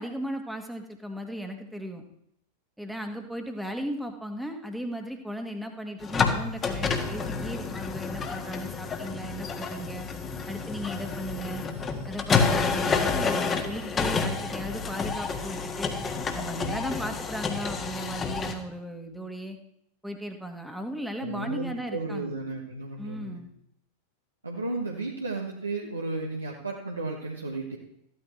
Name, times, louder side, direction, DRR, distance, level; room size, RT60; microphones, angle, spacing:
voice 1, 0.0-2.0 2.8-10.1 10.5-11.6 12.1-15.9 16.3-19.6 20.0-22.3 23.0-23.5, equal, ahead, 4 dB, 1.6 m, -36 dB
sound 1, 6.0-18.5, left 5 dB, 20° left, 1.6 m, -29 dB
voice 2, 21.2-23.4 24.4-27.8, right 3 dB, 80° right, -1 dB, 1.3 m, -34 dB
14.5 x 12.5 x 3.2 m, 0.76 s
figure-of-eight pair, 90°, 0 cm